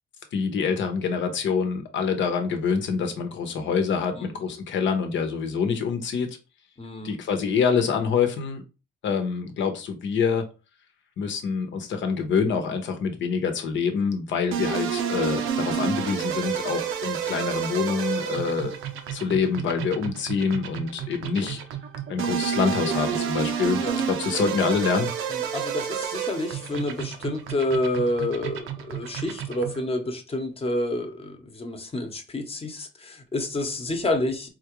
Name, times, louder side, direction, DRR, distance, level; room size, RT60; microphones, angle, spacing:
voice 1, 0.3-6.4 7.0-8.6 9.0-10.4 11.2-18.7 19.1-21.6 22.1-25.1, left 5 dB, 70° left, 0.9 m, -26 dB
voice 2, 6.8-7.1 21.3-21.6 23.8-24.0 25.3-34.5, left 1 dB, 30° left, 0.9 m, -29 dB
sound 1, 14.5-29.9, right 8 dB, 85° right, 0.6 m, -30 dB
4.1 x 2.4 x 3.0 m
cardioid pair, 90°, 20 cm